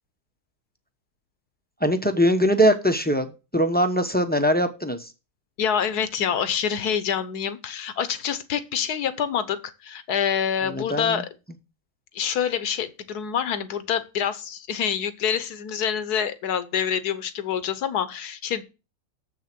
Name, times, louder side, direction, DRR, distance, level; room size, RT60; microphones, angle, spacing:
voice 1, 1.8-3.3 3.5-5.1 10.7-11.2, equal, 10° left, 6 dB, 0.5 m, -21 dB
voice 2, 5.6-11.3 12.1-18.6, left 8 dB, 75° left, 12 dB, 1.4 m, -26 dB
7.4 x 6.5 x 5.9 m, 0.30 s
omnidirectional pair, 1.7 m